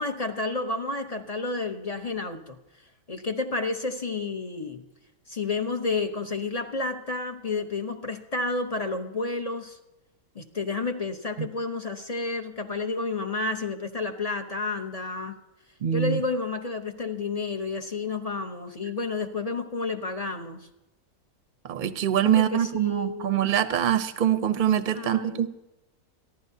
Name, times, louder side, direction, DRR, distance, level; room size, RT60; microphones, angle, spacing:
voice 1, 0.0-2.6 3.1-4.8 5.3-9.8 10.3-15.4 15.9-20.6 22.2-23.4 24.9-25.5, left 3 dB, 30° left, 6 dB, 0.8 m, -30 dB
voice 2, 15.8-16.2 21.7-25.5, right 10 dB, 45° right, 11 dB, 0.7 m, -24 dB
27.5 x 11.0 x 2.7 m, 0.96 s
omnidirectional pair, 1.6 m